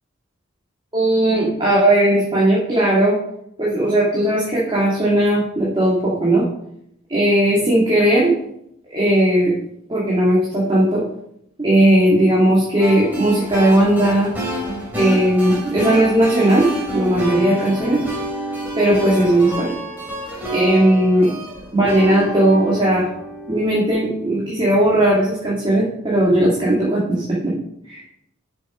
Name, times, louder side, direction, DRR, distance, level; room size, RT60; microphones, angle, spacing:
voice 1, 0.9-3.2 3.6-6.5 7.1-8.3 8.9-9.5 9.9-11.0 11.6-14.3 14.9-16.7 16.9-18.0 18.8-19.7 20.5-21.3 21.7-23.1 23.5-27.5 27.9-28.0, right 1 dB, 25° right, -7 dB, 2.3 m, -17 dB
sound 1, 12.8-23.9, equal, 10° right, 3.4 m, -28 dB
7.0 x 6.4 x 5.3 m, 0.74 s
head